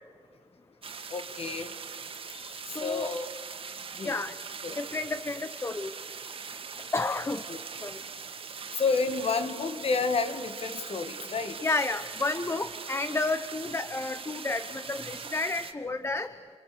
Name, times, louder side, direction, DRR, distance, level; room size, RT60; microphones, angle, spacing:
sound 1, 0.8-15.7, right 5 dB, 55° right, 2.1 m, -41 dB
voice 1, 1.1-1.7 2.3-2.5 2.8-3.3 4.0-4.2 4.6-4.8 7.5-7.6 8.8-11.6, left 4 dB, 60° left, 9 dB, 2.0 m, -30 dB
voice 2, 2.7-3.1 4.0-4.3 4.8-5.9 6.9-7.4 7.8-8.0 11.6-16.3, left 3 dB, 25° left, 11 dB, 0.9 m, -31 dB
29.5 x 27.5 x 6.9 m, 2.2 s
wide cardioid pair, 155°, 11 cm